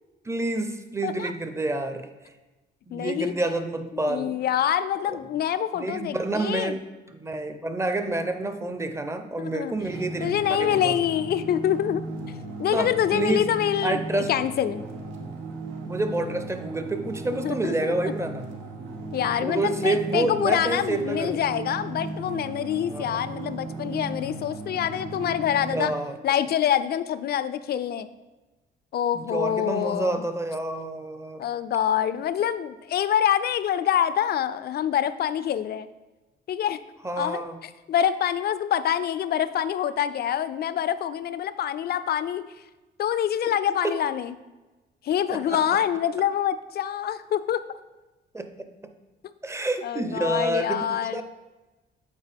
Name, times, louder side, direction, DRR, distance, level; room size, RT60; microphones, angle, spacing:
voice 1, 0.2-2.1 2.9-4.4 5.7-11.0 12.7-13.4 13.8-14.3 15.9-18.5 19.4-21.4 22.9-23.2 25.4-26.2 29.1-31.4 37.0-37.6 43.8-44.0 45.3-45.8 48.3-48.5 49.4-51.2, right 2 dB, 15° right, 8 dB, 0.6 m, -28 dB
voice 2, 2.9-3.3 4.0-6.8 9.4-9.7 10.2-12.0 12.6-14.8 17.4-18.1 19.1-25.9 26.2-28.1 28.9-30.2 31.4-35.9 36.5-36.8 37.2-37.4 37.9-42.4 43.0-44.3 45.0-47.6 49.8-51.2, left 10 dB, 55° left, 14 dB, 0.4 m, -26 dB
sound 1, 9.8-25.9, right 3 dB, 85° right, 0.9 m, -36 dB
8.1 x 4.3 x 3.4 m, 1.1 s
cardioid pair, 90°, 20 cm